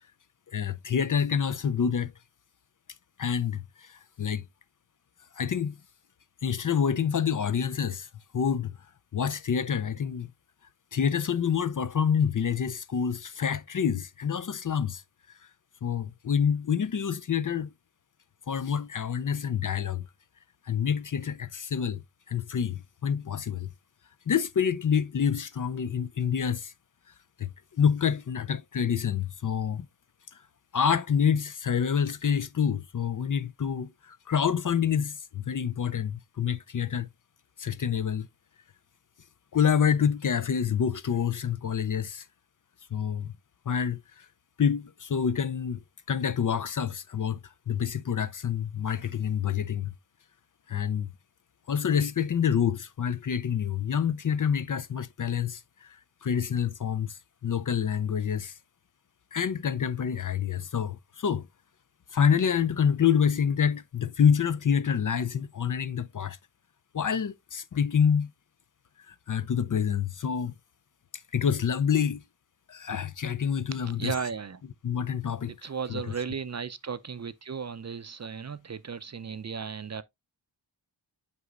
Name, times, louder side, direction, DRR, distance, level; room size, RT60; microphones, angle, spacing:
voice 1, 0.5-2.1 3.2-4.4 5.4-5.8 6.4-8.1 8.3-8.7 9.1-10.3 10.9-15.0 15.8-17.7 18.5-20.0 20.7-22.0 22.3-23.7 24.3-26.7 27.4-27.5 27.8-29.9 30.7-37.1 37.6-38.3 39.5-42.3 42.9-43.3 43.7-44.3 44.6-45.8 46.1-47.4 47.7-49.9 50.7-51.1 51.7-58.6 59.3-61.5 62.1-66.4 66.9-68.3 69.1-70.5 71.3-72.2 72.7-74.1 74.8-76.0, left 7 dB, 45° left, 0.5 m, -27 dB
voice 2, 73.7-74.6 75.5-80.0, right 6 dB, 40° right, 0.5 m, -35 dB
8.1 x 5.1 x 2.4 m
wide cardioid pair, 65°, 46 cm